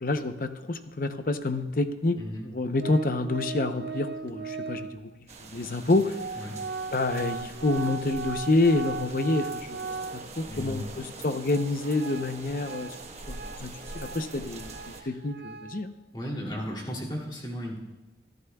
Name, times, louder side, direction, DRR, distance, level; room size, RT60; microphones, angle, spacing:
voice 1, 0.0-2.2 2.5-5.0 5.4-6.2 6.9-12.9 13.3-15.9, left 2 dB, 50° left, 9 dB, 0.7 m, -28 dB
voice 2, 2.2-2.5 6.4-6.6 10.5-10.9 14.9-15.2 16.1-17.8, equal, 25° left, -3 dB, 2.7 m, -35 dB
Organ, 2.8-5.1 5.8-5.9 6.1-10.5 10.9-11.0 11.5-15.9, right 4 dB, 65° right, 0.5 m, -38 dB
sound 1, 5.3-15.0, right 2 dB, 35° right, 1.3 m, -44 dB
23.5 x 13.5 x 2.3 m, 1.1 s
head